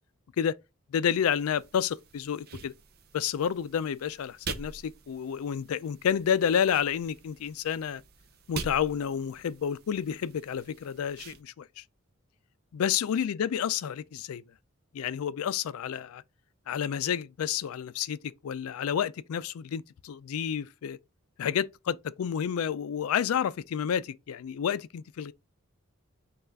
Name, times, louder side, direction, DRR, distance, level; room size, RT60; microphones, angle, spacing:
voice 1, 0.9-2.7 3.1-8.0 8.5-11.8 12.7-14.4 14.9-16.2 16.7-21.0 21.4-25.3, left 8 dB, 80° left, 0.3 m, -30 dB
sound 1, 1.3-11.4, right 5 dB, 45° right, 0.5 m, -45 dB
5.4 x 2.4 x 3.5 m
head